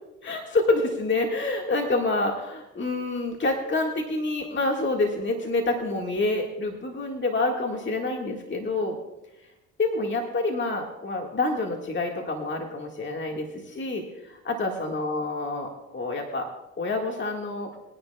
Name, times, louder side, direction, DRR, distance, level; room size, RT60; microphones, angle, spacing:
voice 1, 0.2-9.0 9.8-16.5 16.8-17.7, left 2 dB, 35° left, 1 dB, 1.8 m, -27 dB
21.0 x 10.0 x 2.3 m, 0.96 s
supercardioid pair, 60°, 34 cm